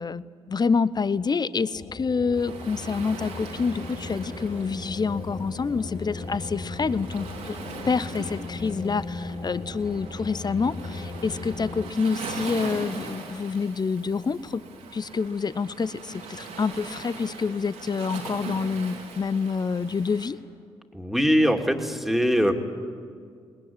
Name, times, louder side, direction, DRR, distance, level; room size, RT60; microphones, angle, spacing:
voice 1, 0.0-7.6 7.8-14.6 14.9-20.4, left 5 dB, 35° left, 17 dB, 0.8 m, -27 dB
sound 1, 1.7-11.9, left 3 dB, 65° left, 2.4 m, -37 dB
Waves surf, 2.3-20.3, right 4 dB, 80° right, 3.6 m, -41 dB
voice 2, 20.9-22.5, equal, ahead, 4 dB, 2.7 m, -22 dB
20.5 x 20.0 x 9.4 m, 2.2 s
hypercardioid pair, 45°, 12 cm